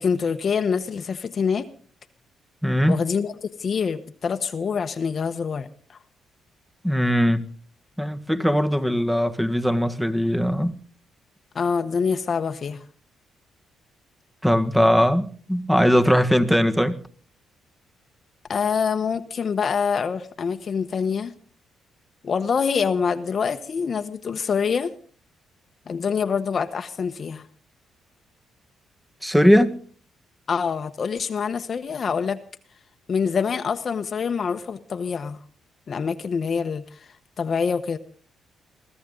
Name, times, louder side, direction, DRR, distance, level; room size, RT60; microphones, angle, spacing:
voice 1, 0.0-1.7 2.9-6.0 11.5-12.8 18.5-21.3 22.2-24.9 25.9-27.5 30.5-32.4 33.1-35.4 35.9-38.0, left 6 dB, 45° left, 1.1 m, -25 dB
voice 2, 2.6-3.0 6.8-7.5 8.0-10.8 14.4-17.0 29.2-29.7, equal, 5° right, 1.6 m, -20 dB
23.5 x 15.0 x 3.9 m
cardioid pair, 90°, 0 cm